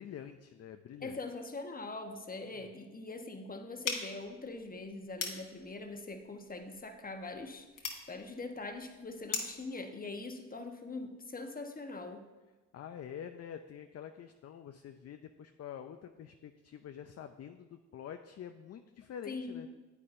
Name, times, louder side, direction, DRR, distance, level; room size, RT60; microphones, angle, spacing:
voice 1, 0.0-1.2 2.5-2.7 12.7-19.7, left 9 dB, 45° left, 7 dB, 0.5 m, -47 dB
voice 2, 1.0-12.2 19.3-19.6, left 3 dB, 25° left, 5 dB, 1.1 m, -43 dB
sound 1, 3.8-9.7, left 5 dB, 60° left, 1.4 m, -42 dB
9.8 x 8.2 x 2.6 m, 1.2 s
supercardioid pair, 60°, 35 cm